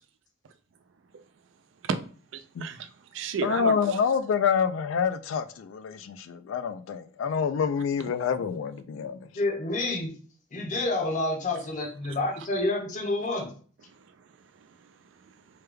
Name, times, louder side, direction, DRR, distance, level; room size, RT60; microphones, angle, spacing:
voice 1, 2.3-4.0 14.6-14.9, right 5 dB, 70° right, 0.4 m, -33 dB
voice 2, 3.4-9.3, left 6 dB, 75° left, 0.3 m, -27 dB
voice 3, 9.4-10.1 10.5-13.5, left 2 dB, 40° left, 0.6 m, -28 dB
3.2 x 2.2 x 3.3 m
head